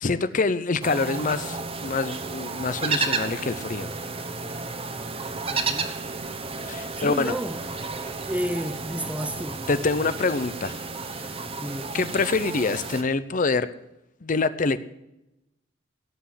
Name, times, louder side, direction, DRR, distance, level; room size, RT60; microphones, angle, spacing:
voice 1, 0.0-3.9 6.7-7.4 9.7-10.8 11.9-13.7 14.2-14.8, left 4 dB, 45° left, 0.6 m, -25 dB
sound 1, 0.8-13.0, right 4 dB, 30° right, 1.1 m, -32 dB
voice 2, 5.2-6.0 7.0-7.9 8.3-9.6 11.6-11.9, equal, 5° right, 0.6 m, -32 dB
17.5 x 6.3 x 9.6 m
head